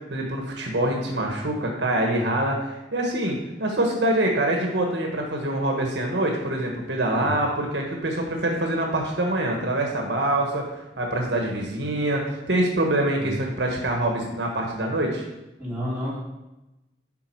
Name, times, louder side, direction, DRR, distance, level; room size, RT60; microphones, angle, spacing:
voice 1, 0.0-10.6 11.0-15.2, right 1 dB, 75° right, 1 dB, 1.4 m, -25 dB
voice 2, 15.6-16.2, equal, 10° right, -10 dB, 3.3 m, -30 dB
11.5 x 4.3 x 4.7 m, 0.99 s
head